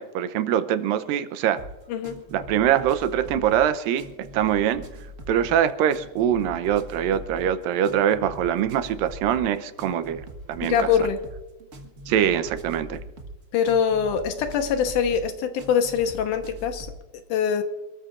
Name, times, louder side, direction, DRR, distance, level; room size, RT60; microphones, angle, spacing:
voice 1, 0.0-1.6 2.3-4.0 4.3-4.8 5.3-10.2 10.5-10.9 12.1-13.0, right 10 dB, 85° right, 11 dB, 2.5 m, -23 dB
sound 1, 1.6-17.0, right 1 dB, 50° right, 0.9 m, -42 dB
voice 2, 1.9-2.2 10.6-11.2 13.5-16.9 17.3-17.6, left 7 dB, 75° left, 6 dB, 2.5 m, -23 dB
26.5 x 13.5 x 2.5 m, 1.1 s
omnidirectional pair, 3.9 m